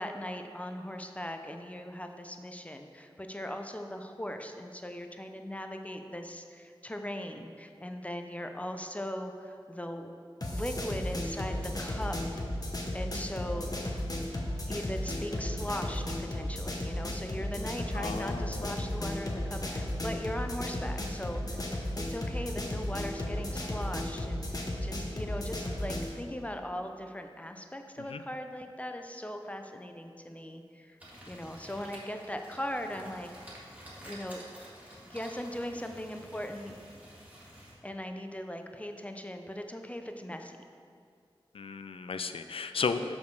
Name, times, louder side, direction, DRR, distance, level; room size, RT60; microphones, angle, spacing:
voice 1, 0.0-10.2 10.5-12.1 12.9-13.7 14.7-21.6 22.0-31.0 31.3-33.5 34.0-34.4 35.1-36.8 37.8-40.6, equal, 15° left, 5 dB, 0.5 m, -39 dB
sound 1, 10.4-26.1, left 1 dB, 40° left, 0.9 m, -34 dB
voice 2, 17.9-18.9 28.0-28.2 41.5-43.2, left 5 dB, 75° left, 9 dB, 0.4 m, -35 dB
sound 2, 31.0-37.7, equal, 15° right, 1.6 m, -50 dB
5.2 x 5.0 x 6.2 m, 2.3 s
wide cardioid pair, 65°, 9 cm